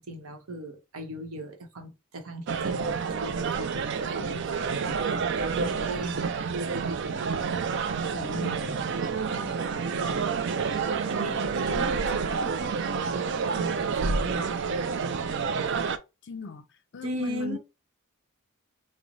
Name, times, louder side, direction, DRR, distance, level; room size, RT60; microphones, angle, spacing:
voice 1, 0.0-5.1 5.5-6.3 8.3-8.8 9.1-15.0 17.0-17.6, right 1 dB, 75° right, 0.9 m, -38 dB
sound 1, 2.5-16.0, right 5 dB, 55° right, 0.4 m, -29 dB
voice 2, 8.1-8.6 12.1-12.2 16.2-16.7 16.9-17.6, left 4 dB, 55° left, 0.5 m, -39 dB
3.1 x 2.1 x 3.8 m
head